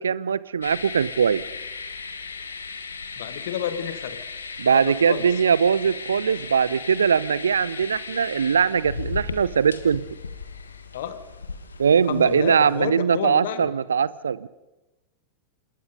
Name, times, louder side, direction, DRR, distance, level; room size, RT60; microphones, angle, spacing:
voice 1, 0.0-1.4 4.6-10.1 11.8-14.5, right 7 dB, 70° right, 20 dB, 0.6 m, -21 dB
sound 1, 0.6-12.8, left 4 dB, 75° left, 1.7 m, -36 dB
voice 2, 3.2-4.2 4.7-5.3 10.9-11.2 12.1-13.7, left 9 dB, 55° left, 10 dB, 1.8 m, -30 dB
27.0 x 21.5 x 5.3 m, 1.0 s
figure-of-eight pair, 90°, 0 cm